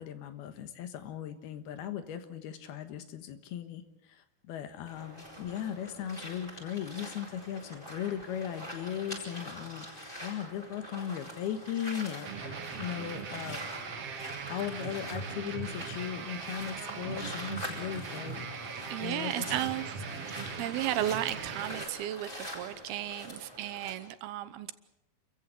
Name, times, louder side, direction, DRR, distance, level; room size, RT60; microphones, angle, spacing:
voice 1, 0.0-13.7 14.5-18.5 19.0-19.6, left 9 dB, 80° left, 10 dB, 3.3 m, -38 dB
sound 1, 4.8-23.9, equal, 10° left, 7.5 m, -44 dB
sound 2, 12.2-21.8, right 5 dB, 45° right, 2.5 m, -40 dB
voice 2, 18.9-24.7, right 13 dB, 80° right, 13 dB, 2.9 m, -34 dB
28.5 x 15.0 x 8.2 m, 0.84 s
omnidirectional pair, 4.5 m